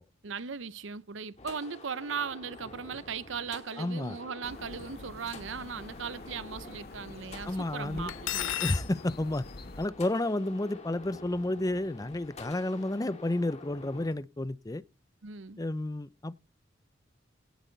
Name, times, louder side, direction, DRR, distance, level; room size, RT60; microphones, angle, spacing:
voice 1, 0.2-8.5 15.2-15.6, right 6 dB, 75° right, 0.7 m, -38 dB
sound 1, 1.4-14.1, left 2 dB, 35° left, 2.3 m, -48 dB
voice 2, 3.8-4.2 7.4-8.1 8.6-9.5 9.8-14.8 15.6-16.3, left 1 dB, 20° left, 0.6 m, -31 dB
sound 2, 4.4-9.9, left 2 dB, 55° left, 0.8 m, -47 dB
Cutlery silverware, 8.1-8.9, left 13 dB, 80° left, 0.5 m, -32 dB
17.5 x 8.3 x 4.0 m
head